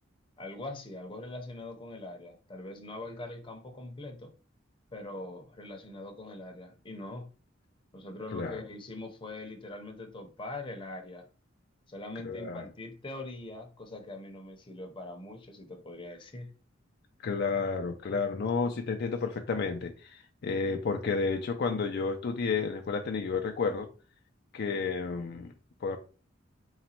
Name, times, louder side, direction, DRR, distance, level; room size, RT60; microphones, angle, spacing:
voice 1, 0.4-4.3 4.9-7.3 7.9-11.2 11.9-16.5, left 2 dB, 25° left, 0.7 m, -42 dB
voice 2, 12.2-12.6 17.2-23.9 24.5-25.5 25.8-26.0, left 4 dB, 55° left, 0.4 m, -31 dB
3.9 x 2.2 x 4.3 m
head